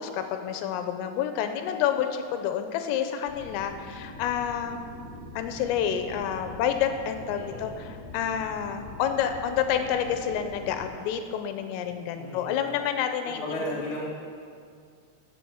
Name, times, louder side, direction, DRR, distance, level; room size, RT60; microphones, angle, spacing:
voice 1, 0.0-4.8 5.4-13.6, left 9 dB, 85° left, 7 dB, 3.3 m, -29 dB
sound 1, 3.3-10.8, left 2 dB, 20° left, 3.3 m, -43 dB
voice 2, 7.3-7.7 12.1-12.6 13.2-14.1, left 1 dB, 35° left, -7 dB, 2.5 m, -35 dB
15.0 x 7.8 x 7.0 m, 2.2 s
omnidirectional pair, 6.0 m